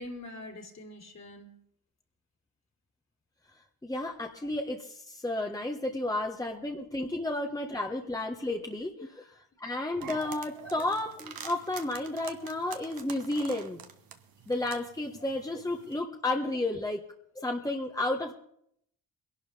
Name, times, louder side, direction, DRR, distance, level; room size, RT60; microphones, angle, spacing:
voice 1, 0.0-1.6 9.0-9.1 10.6-10.9 12.2-12.3, left 1 dB, 45° left, 1 dB, 3.5 m, -44 dB
voice 2, 3.8-9.3 9.6-13.8 14.5-17.0 17.3-18.3, left 2 dB, 10° left, 2 dB, 1.5 m, -32 dB
sound 1, 10.0-16.0, right 7 dB, 70° right, 1.5 m, -46 dB
22.0 x 12.0 x 3.5 m, 0.69 s
cardioid pair, 60°, 37 cm